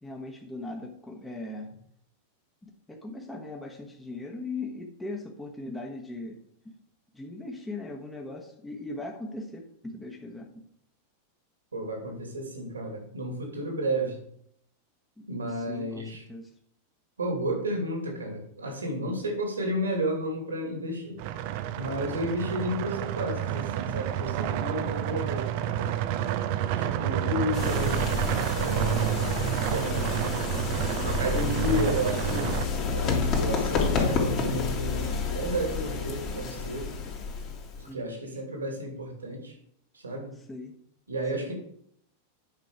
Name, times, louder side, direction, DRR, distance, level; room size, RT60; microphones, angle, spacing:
voice 1, 0.0-1.7 2.6-6.4 6.6-6.8 7.1-10.6 15.2-16.5 27.2-27.5 37.8-38.0 40.5-40.7 41.3-41.5, left 2 dB, 10° left, 0 dB, 1.3 m, -39 dB
voice 2, 11.7-14.2 15.3-16.2 17.2-21.2 21.7-26.0 26.8-28.2 28.6-29.4 29.7-30.3 31.0-32.5 32.9-37.0 37.8-39.5 39.9-40.4 41.1-41.5, right 1 dB, 75° right, 2 dB, 2.5 m, -32 dB
sound 1, 21.2-32.7, right 11 dB, 45° right, 0.6 m, -29 dB
sound 2, 27.5-37.9, left 5 dB, 35° left, 2.3 m, -29 dB
9.4 x 5.5 x 4.8 m, 0.69 s
figure-of-eight pair, 90°, 0 cm